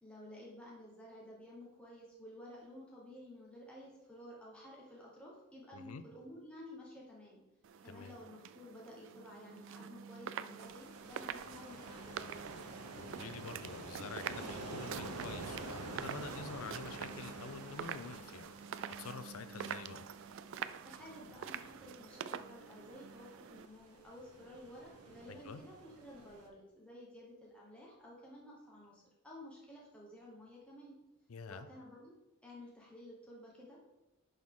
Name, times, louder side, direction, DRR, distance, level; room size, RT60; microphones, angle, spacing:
voice 1, 0.0-7.4 7.8-12.4 20.8-31.0 31.5-32.1 32.4-34.0, left 1 dB, 5° left, -5 dB, 1.1 m, -53 dB
voice 2, 5.7-6.0 7.8-8.2 13.0-18.5 18.9-20.1 25.3-25.6 31.3-31.7, left 5 dB, 75° left, 12 dB, 0.5 m, -47 dB
sound 1, 7.6-23.7, right 8 dB, 55° right, 0.3 m, -46 dB
sound 2, 10.5-26.5, right 2 dB, 85° right, 1.0 m, -49 dB
10.5 x 3.9 x 3.8 m, 1.0 s
head